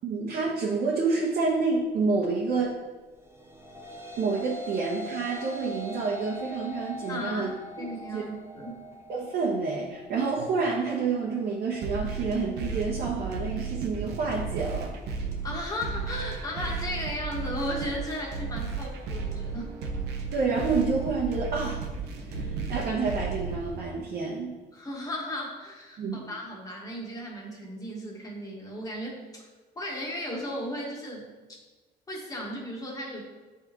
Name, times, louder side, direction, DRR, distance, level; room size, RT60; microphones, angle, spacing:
voice 1, 0.0-2.7 4.2-7.5 8.1-8.2 9.1-14.9 20.3-21.8 22.3-24.5 26.0-26.2, right 4 dB, 60° right, -4 dB, 1.1 m, -28 dB
sound 1, 3.3-12.4, equal, 15° right, 0.7 m, -42 dB
voice 2, 7.1-7.4 7.8-8.8 15.4-19.7 24.7-29.5 29.7-31.3 32.1-33.2, left 1 dB, 20° left, -2 dB, 1.7 m, -35 dB
sound 2, 11.8-23.8, right 4 dB, 80° right, 0.9 m, -34 dB
8.1 x 4.2 x 3.0 m, 1.3 s
cardioid pair, 110°, 17 cm